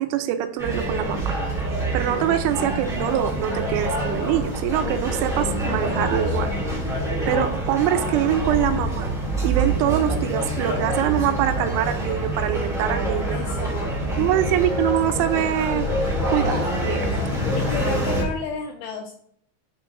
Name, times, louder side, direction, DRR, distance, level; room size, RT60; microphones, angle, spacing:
voice 1, 0.0-1.3 1.9-6.5 7.3-9.1 9.4-13.4 14.2-15.9 16.3-17.1, right 11 dB, 85° right, 7 dB, 3.1 m, -24 dB
sound 1, 0.6-18.2, right 1 dB, ahead, 0.8 m, -26 dB
voice 2, 13.3-14.3 17.1-17.2 17.6-19.1, left 6 dB, 90° left, 5 dB, 2.4 m, -33 dB
10.5 x 5.7 x 2.6 m, 0.63 s
omnidirectional pair, 5.4 m